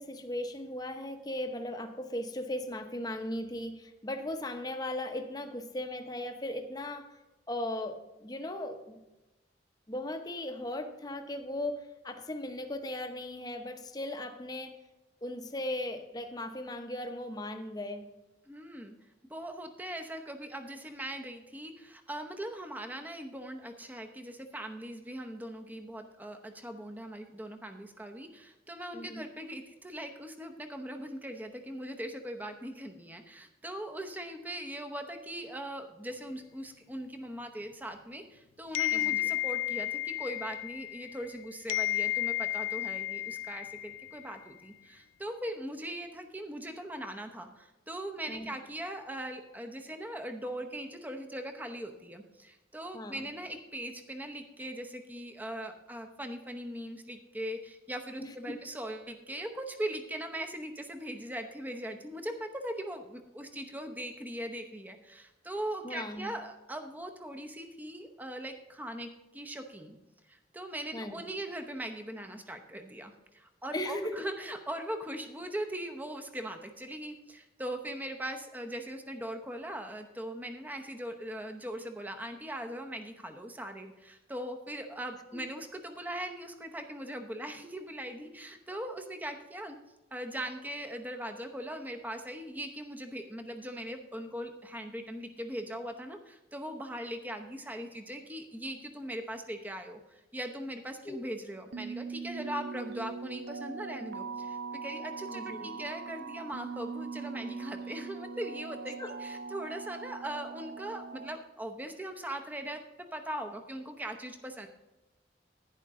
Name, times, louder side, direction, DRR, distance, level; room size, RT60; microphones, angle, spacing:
voice 1, 0.0-7.1 7.5-9.0 9.9-14.7 15.2-18.1 28.9-29.2 38.9-39.2 48.3-48.5 52.9-53.3 58.2-58.5 65.8-66.3 70.9-71.2 73.7-74.2 85.3-85.4 101.0-101.2 105.3-105.7 109.0-109.1, left 1 dB, 20° left, 6 dB, 0.8 m, -37 dB
voice 2, 18.5-18.9 19.3-70.0 70.3-89.8 90.1-112.8 113.1-114.7, right 1 dB, 10° right, 5 dB, 0.8 m, -40 dB
sound 1, 38.7-41.4 41.7-44.3, left 13 dB, 90° left, 0.3 m, -32 dB
sound 2, 101.7-111.4, right 4 dB, 60° right, 0.6 m, -41 dB
11.0 x 9.9 x 3.7 m, 1.0 s
head